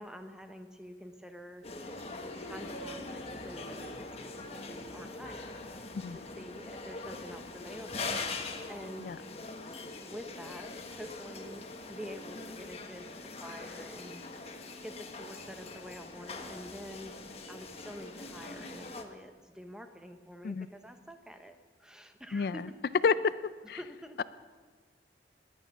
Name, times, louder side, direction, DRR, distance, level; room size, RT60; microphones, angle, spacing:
voice 1, 0.0-1.6 2.4-5.9 6.1-9.2 10.0-14.5 14.8-17.1 17.5-22.7 23.8-24.2, equal, 5° right, 7 dB, 0.9 m, -48 dB
sound 1, 1.6-19.0, left 3 dB, 35° left, 1.1 m, -42 dB
voice 2, 5.9-6.2 9.0-9.2 20.4-20.7 22.3-22.6 23.0-23.3 23.7-23.8, left 5 dB, 60° left, 15 dB, 0.4 m, -29 dB
20.0 x 9.4 x 5.9 m, 1.4 s
head